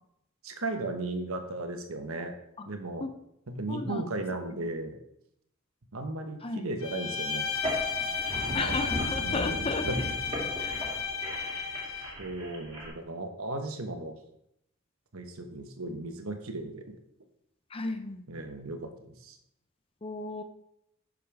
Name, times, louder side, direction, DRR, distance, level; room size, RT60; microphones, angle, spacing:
voice 1, 0.4-2.3 2.6-3.1 3.5-5.0 5.9-7.5 8.5-8.9 9.2-10.0 12.2-14.1 15.1-16.8 18.3-19.4, right 2 dB, 75° right, 5 dB, 1.3 m, -36 dB
voice 2, 3.7-4.0 6.4-6.7 8.5-9.8 10.6-10.7 17.7-18.3 20.0-20.4, left 2 dB, 25° left, 8 dB, 0.7 m, -34 dB
Bowed string instrument, 6.8-12.2, left 6 dB, 80° left, 1.2 m, -33 dB
sound 1, 7.5-12.9, equal, 25° right, 2.9 m, -37 dB
10.5 x 6.5 x 3.5 m, 0.77 s
head